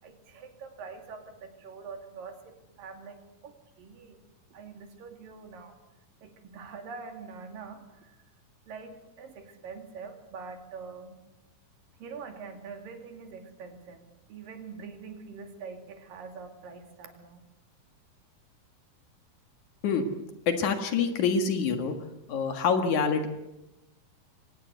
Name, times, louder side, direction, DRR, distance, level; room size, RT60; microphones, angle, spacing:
voice 1, 0.0-4.2 4.5-5.8 6.2-8.2 8.7-11.2 12.0-17.4, right 5 dB, 80° right, 6 dB, 4.1 m, -44 dB
voice 2, 20.5-22.0 22.3-23.3, left 5 dB, 65° left, 7 dB, 3.0 m, -26 dB
24.0 x 18.0 x 8.0 m, 0.95 s
omnidirectional pair, 3.9 m